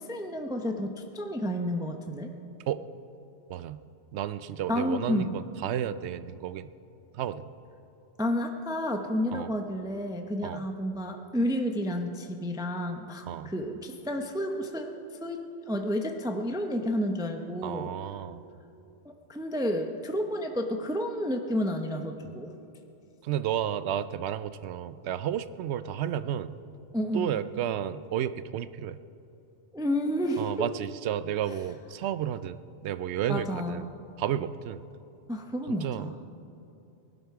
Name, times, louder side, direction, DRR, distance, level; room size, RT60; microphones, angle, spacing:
voice 1, 0.0-2.3 4.7-5.4 8.2-14.9 15.2-17.9 19.0-22.5 26.9-27.3 29.7-30.5 33.3-33.9 35.3-36.1, equal, 5° right, 4 dB, 0.6 m, -31 dB
voice 2, 3.5-3.8 4.1-6.7 7.1-7.5 9.3-9.5 10.4-10.7 13.3-13.5 17.6-18.4 23.2-26.6 27.1-29.0 30.4-33.9 34.2-34.8 35.7-36.1, right 10 dB, 75° right, 14 dB, 0.8 m, -32 dB
19.5 x 12.0 x 4.7 m, 2.8 s
omnidirectional pair, 1.2 m